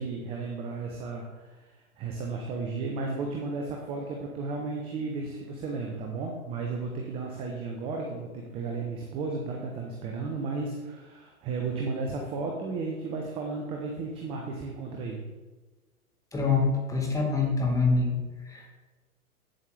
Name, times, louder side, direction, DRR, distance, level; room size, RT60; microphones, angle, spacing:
voice 1, 0.0-15.2, right 4 dB, 15° right, 1 dB, 0.5 m, -34 dB
voice 2, 16.3-18.1 18.5-18.7, left 4 dB, 5° left, 0 dB, 1.3 m, -25 dB
8.2 x 7.4 x 3.2 m, 1.3 s
figure-of-eight pair, 105°, 45 cm